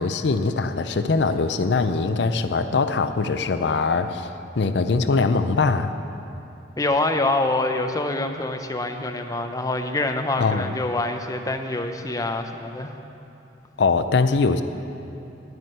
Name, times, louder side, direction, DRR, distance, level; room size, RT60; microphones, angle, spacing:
voice 1, 0.0-4.3 4.6-5.9 10.4-10.7 13.8-14.6, left 4 dB, 70° left, 10 dB, 0.5 m, -22 dB
voice 2, 6.8-12.9, left 2 dB, 20° left, 5 dB, 0.6 m, -25 dB
9.6 x 9.5 x 7.7 m, 2.8 s
head